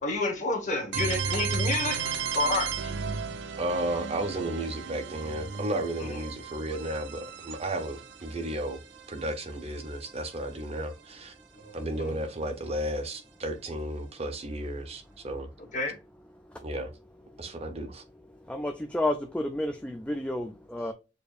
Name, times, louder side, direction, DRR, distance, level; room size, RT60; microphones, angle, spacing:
voice 1, 0.0-2.9 6.0-6.2 11.5-12.1 15.7-16.0, left 2 dB, 45° left, 1.5 m, -30 dB
sound 1, 0.9-10.7, right 6 dB, 70° right, 0.5 m, -35 dB
voice 2, 3.6-8.8 9.1-11.3 11.7-15.5 16.6-16.9 17.4-18.0, right 1 dB, 35° right, 0.7 m, -33 dB
voice 3, 18.5-20.9, left 1 dB, 5° left, 0.3 m, -30 dB
6.7 x 2.6 x 2.4 m
head